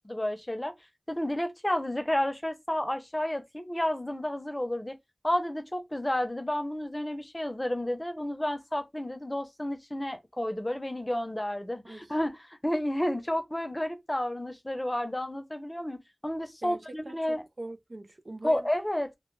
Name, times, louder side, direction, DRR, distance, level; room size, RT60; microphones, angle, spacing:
voice 1, 0.0-0.7 1.1-5.0 5.2-17.4 18.4-19.1, left 1 dB, 30° left, 0.6 m, -31 dB
voice 2, 17.1-18.7, right 2 dB, 75° right, 0.4 m, -42 dB
2.2 x 2.1 x 3.0 m
wide cardioid pair, 40°, 0 cm